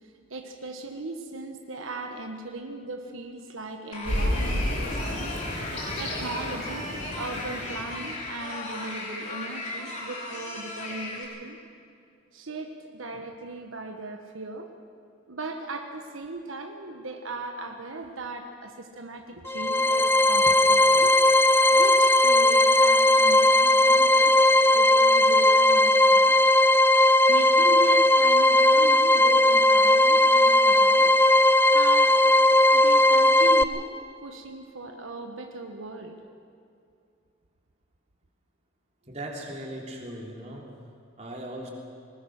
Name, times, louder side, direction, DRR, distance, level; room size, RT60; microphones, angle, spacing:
voice 1, 0.0-5.3 6.0-6.9 7.2-11.6 12.3-14.7 15.3-21.2 21.4-26.4 27.3-31.1 31.7-32.2 32.7-33.9 34.2-36.2, right 2 dB, 85° right, 4 dB, 1.3 m, -38 dB
sound 1, 3.9-11.2, left 2 dB, 35° left, 3.3 m, -36 dB
sound 2, 4.0-8.3, equal, 75° left, 6.5 m, -31 dB
sound 3, 19.5-33.6, left 1 dB, 10° left, 0.4 m, -18 dB
voice 2, 39.1-40.6 41.2-41.7, right 1 dB, 35° right, -1 dB, 3.3 m, -38 dB
20.0 x 20.0 x 6.5 m, 2.4 s
head